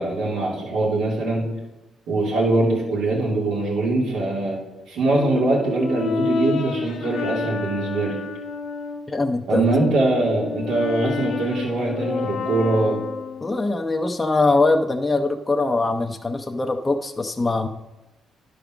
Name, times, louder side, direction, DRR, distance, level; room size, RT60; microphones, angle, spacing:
voice 1, 0.0-1.5 2.1-4.6 4.9-8.2 9.5-13.0, right 2 dB, 90° right, -3 dB, 2.6 m, -22 dB
Brass instrument, 5.1-9.1 9.6-13.7, left 5 dB, 65° left, 1.0 m, -30 dB
voice 2, 9.1-9.7 13.4-17.7, left 3 dB, 20° left, 4 dB, 0.6 m, -22 dB
10.5 x 5.1 x 5.9 m, 1.0 s
cardioid pair, 90°, 0 cm